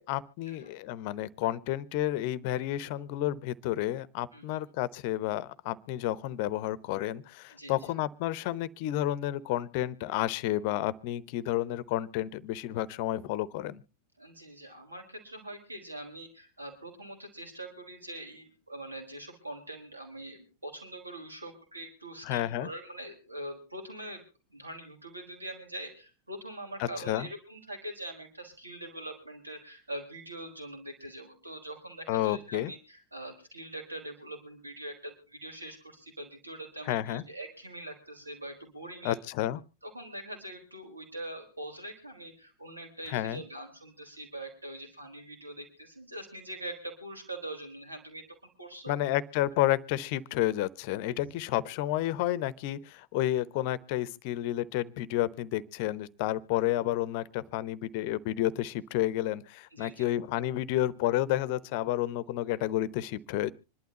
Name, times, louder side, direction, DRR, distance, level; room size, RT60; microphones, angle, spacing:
voice 1, 0.0-13.8 22.2-22.7 26.8-27.3 32.1-32.7 36.9-37.2 39.0-39.6 43.1-43.4 48.9-63.5, left 14 dB, 45° left, 19 dB, 0.8 m, -31 dB
voice 2, 7.5-7.9 14.2-24.2 24.5-39.2 39.8-49.0 51.1-51.3 59.7-60.1, right 1 dB, 80° right, 4 dB, 4.0 m, -43 dB
26.0 x 11.5 x 2.9 m, 0.33 s
figure-of-eight pair, 90°, 0 cm